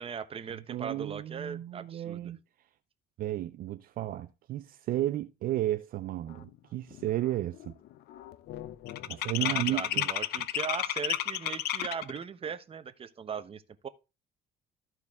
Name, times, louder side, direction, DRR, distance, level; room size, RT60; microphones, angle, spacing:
voice 1, 0.0-2.3 9.4-13.9, right 7 dB, 35° right, 0.9 m, -39 dB
voice 2, 0.5-2.4 3.2-7.8 9.1-10.1, right 14 dB, 60° right, 0.5 m, -33 dB
sound 1, 6.5-6.6 6.9-7.3 7.5-12.2, left 13 dB, 70° left, 0.6 m, -32 dB
13.5 x 4.6 x 3.6 m
cardioid pair, 110°, 17 cm